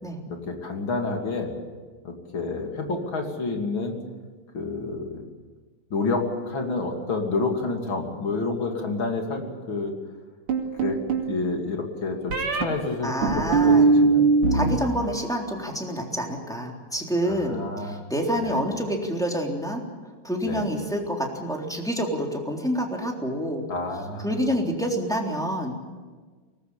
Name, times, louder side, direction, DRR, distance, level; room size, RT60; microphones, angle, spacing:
voice 1, 0.3-1.5 2.0-4.0 4.5-5.2 5.9-9.9 10.8-11.0 11.3-14.3 17.2-18.0 18.3-18.6 20.4-20.7 23.7-24.4, left 3 dB, 65° left, 2 dB, 3.7 m, -29 dB
sound 1, 10.5-11.3 12.3-12.6 13.2-14.8 15.0-15.6, right 4 dB, 80° right, 3.5 m, -20 dB
voice 2, 13.0-13.8 14.5-19.8 20.2-23.6 24.2-25.7, equal, ahead, 0 dB, 3.5 m, -27 dB
23.5 x 19.5 x 8.6 m, 1.4 s
omnidirectional pair, 2.4 m